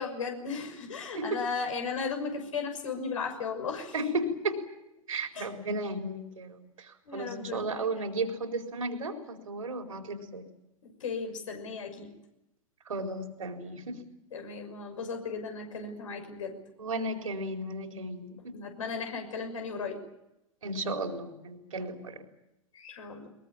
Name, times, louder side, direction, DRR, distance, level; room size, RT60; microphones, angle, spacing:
voice 1, 0.0-4.0 5.3-5.5 7.1-7.9 10.8-12.1 14.3-16.5 18.5-20.0 22.7-23.3, left 5 dB, 65° left, 4 dB, 6.2 m, -36 dB
voice 2, 3.9-4.6 5.1-10.4 12.9-14.1 16.8-18.5 20.6-22.2, right 2 dB, 70° right, 4 dB, 4.4 m, -34 dB
23.0 x 21.5 x 8.9 m, 0.88 s
figure-of-eight pair, 95°, 18 cm